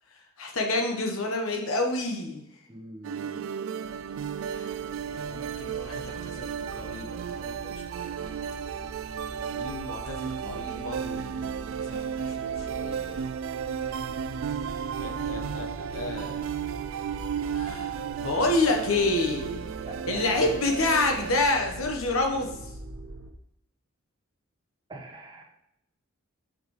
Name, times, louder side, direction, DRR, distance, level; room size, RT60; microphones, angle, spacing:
voice 1, 0.4-2.4 4.4-8.1 9.5-11.4 11.7-13.3 15.0-16.5 17.5-19.7 20.0-22.7, left 2 dB, 80° left, 3 dB, 1.1 m, -29 dB
voice 2, 2.7-3.4 19.9-20.5 24.9-25.5, right 2 dB, 20° right, -2 dB, 0.9 m, -42 dB
sound 1, 3.0-21.4, right 7 dB, 65° right, 0.3 m, -34 dB
sound 2, 3.8-23.3, right 2 dB, 90° right, 0.9 m, -43 dB
7.1 x 5.1 x 3.2 m, 0.82 s
head